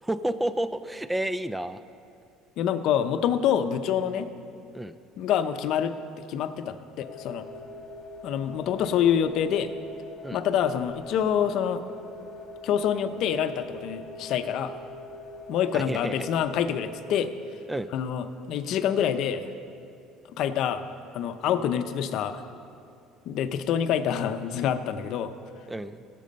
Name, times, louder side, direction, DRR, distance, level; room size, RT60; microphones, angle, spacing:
voice 1, 0.0-1.8 4.7-4.9 10.2-10.4 15.7-16.3 17.7-17.9 25.7-26.0, right 1 dB, 10° right, 13 dB, 0.4 m, -30 dB
voice 2, 2.6-4.3 5.2-5.9 6.3-7.4 8.2-9.7 10.3-11.8 12.6-14.7 15.5-17.3 17.9-19.5 20.4-20.9 21.1-22.4 23.3-25.3, left 9 dB, 60° left, 9 dB, 0.7 m, -26 dB
sound 1, 7.0-16.8, left 1 dB, 40° left, 1.9 m, -43 dB
16.5 x 7.6 x 5.3 m, 2.5 s
cardioid pair, 130°, 0 cm